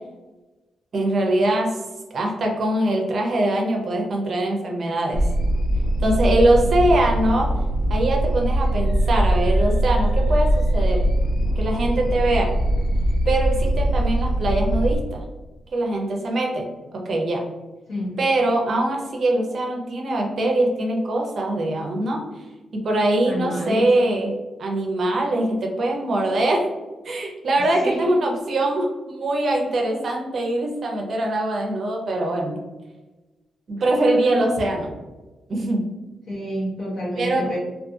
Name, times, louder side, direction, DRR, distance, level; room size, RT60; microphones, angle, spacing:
voice 1, 0.9-1.7 2.1-5.2 6.0-7.5 7.9-11.1 11.6-12.5 13.3-15.2 15.7-16.7 16.9-17.4 18.2-22.2 22.7-26.7 27.0-32.6 33.7-34.9 35.5-35.8 37.2-37.5, right 1 dB, 50° right, 1 dB, 0.5 m, -22 dB
sound 1, 5.1-15.0, right 1 dB, 80° left, 0.3 m, -21 dB
voice 2, 17.9-18.2 23.2-23.9 27.6-28.2 34.3-34.4 36.3-37.6, equal, 60° left, -6 dB, 1.1 m, -29 dB
2.6 x 2.5 x 2.3 m, 1.1 s
wide cardioid pair, 155°, 0 cm